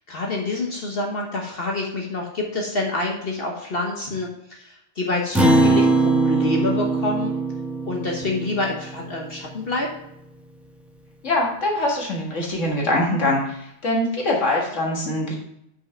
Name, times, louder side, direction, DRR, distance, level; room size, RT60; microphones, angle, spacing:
voice 1, 0.1-7.3 7.8-9.9, left 2 dB, 55° left, 0 dB, 1.3 m, -27 dB
Acoustic guitar, 5.3-10.0, right 2 dB, ahead, 0.9 m, -21 dB
voice 2, 11.2-15.4, left 1 dB, 90° left, -1 dB, 2.1 m, -23 dB
5.9 x 5.5 x 5.7 m, 0.77 s
omnidirectional pair, 1.2 m